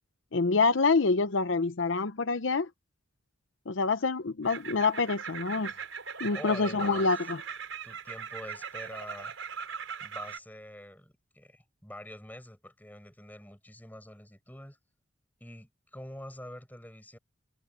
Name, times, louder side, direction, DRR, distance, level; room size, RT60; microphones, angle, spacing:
voice 1, 0.3-2.7 3.7-5.7 6.2-7.4, left 4 dB, 70° left, 0.7 m, -26 dB
sound 1, 4.4-10.4, right 6 dB, 90° right, 5.6 m, -40 dB
voice 2, 6.3-7.1 7.8-9.4 10.0-14.8 15.4-17.2, left 1 dB, 10° left, 7.9 m, -46 dB
head